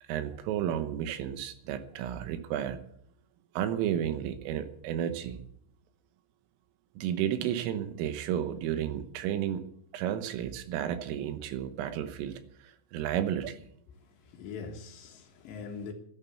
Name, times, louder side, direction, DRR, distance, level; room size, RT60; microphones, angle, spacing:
voice 1, 0.1-2.8 3.6-5.4 7.0-9.6 9.9-13.6, right 10 dB, 80° right, 3.6 m, -32 dB
voice 2, 14.2-15.9, left 5 dB, 65° left, 3.3 m, -42 dB
11.5 x 11.0 x 8.1 m
omnidirectional pair, 5.9 m